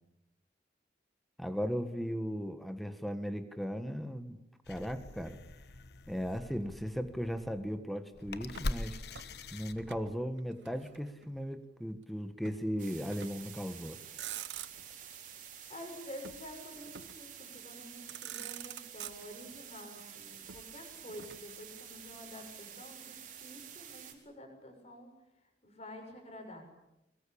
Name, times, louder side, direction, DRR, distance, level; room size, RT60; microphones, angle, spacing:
voice 1, 1.4-4.4 4.7-5.4 6.1-9.0 9.5-14.0, equal, ahead, 9 dB, 1.5 m, -37 dB
sound 1, 4.6-10.3, left 2 dB, 65° left, 1.2 m, -43 dB
Motor vehicle (road), 8.5-10.1 10.4-11.5 12.4-12.7 13.1-13.6 14.0-15.0 16.2-17.3 17.8-17.9 18.1-19.6 20.5-22.1, right 10 dB, 80° right, 0.9 m, -47 dB
sound 2, 12.8-24.1, right 9 dB, 45° right, 4.1 m, -50 dB
voice 2, 15.7-26.7, left 1 dB, 35° left, 4 dB, 6.6 m, -49 dB
22.5 x 22.0 x 8.8 m, 0.91 s
head